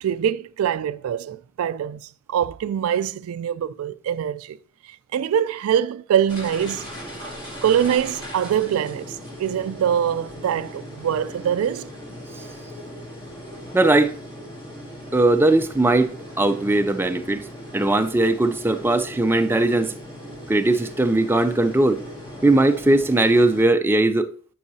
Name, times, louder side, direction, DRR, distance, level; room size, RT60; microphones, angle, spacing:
voice 1, 0.0-4.6 5.1-6.9 7.6-11.9, right 9 dB, 85° right, 0.3 m, -24 dB
sound 1, 6.3-23.6, equal, 25° left, 1.9 m, -38 dB
voice 2, 13.7-14.2 15.1-17.5 17.7-19.9 20.5-22.0 22.4-24.3, right 2 dB, 10° right, 0.4 m, -19 dB
9.4 x 5.6 x 2.7 m
head